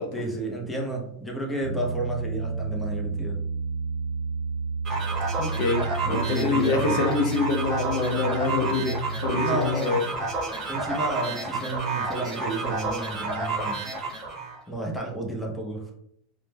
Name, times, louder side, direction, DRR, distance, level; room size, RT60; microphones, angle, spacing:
voice 1, 0.1-3.4 6.0-7.1 9.3-10.0 10.7-13.9 14.7-15.9, right 2 dB, 5° left, -1 dB, 0.5 m, -31 dB
Piano, 1.6-9.7, right 4 dB, 70° right, 0.7 m, -31 dB
sound 1, 4.8-14.6, right 3 dB, 30° right, 0.8 m, -30 dB
voice 2, 5.4-10.0, left 4 dB, 60° left, 3 dB, 0.5 m, -26 dB
2.1 x 2.1 x 3.2 m, 0.70 s
supercardioid pair, 140°, 0 cm